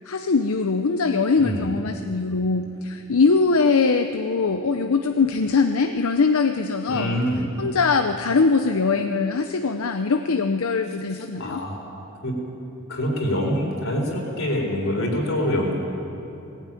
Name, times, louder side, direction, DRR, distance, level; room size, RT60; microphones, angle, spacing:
voice 1, 0.1-7.2 7.6-11.6, left 4 dB, 90° left, 7 dB, 0.7 m, -22 dB
voice 2, 1.4-1.8 6.9-7.5 11.4-11.8 12.2-12.3 12.9-15.7, equal, 65° left, 0 dB, 4.3 m, -25 dB
19.0 x 16.5 x 9.1 m, 2.8 s
head